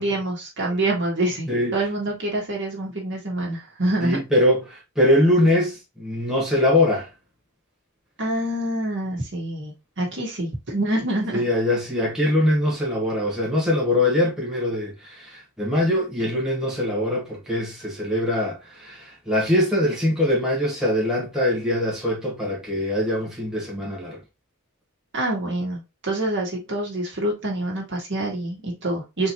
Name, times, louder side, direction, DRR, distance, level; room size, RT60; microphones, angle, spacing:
voice 1, 0.0-4.2 8.2-11.4 25.1-29.3, right 1 dB, 60° right, 1.6 m, -26 dB
voice 2, 4.0-7.1 11.3-24.2, left 1 dB, 5° right, 1.4 m, -22 dB
4.3 x 3.1 x 2.9 m
head